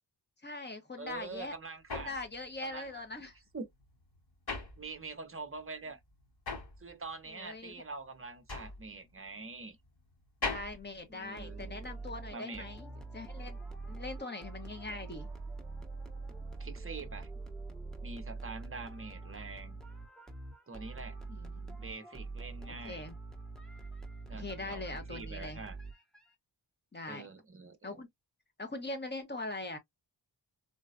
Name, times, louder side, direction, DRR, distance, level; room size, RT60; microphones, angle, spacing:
voice 1, 0.4-1.5 1.9-3.4 7.3-7.7 10.4-13.6 13.9-15.3 21.3-21.8 22.7-23.1 24.3-25.6 26.9-27.3 27.8-28.1 28.6-29.8, left 2 dB, 25° left, 0.9 m, -42 dB
voice 2, 1.0-2.1 2.6-3.0 3.5-3.7 4.8-6.0 6.8-9.8 11.1-11.8 12.3-12.7 16.6-17.3 18.0-19.8 20.7-21.2 21.8-23.0 24.3-24.8 25.1-25.8 27.1-28.0, right 3 dB, 30° right, 0.7 m, -45 dB
sound 1, 1.1-5.4 5.7-11.9, left 3 dB, 55° left, 2.8 m, -42 dB
sound 2, 11.4-26.3, right 3 dB, ahead, 0.9 m, -44 dB
4.0 x 2.1 x 2.3 m
wide cardioid pair, 140°, 43 cm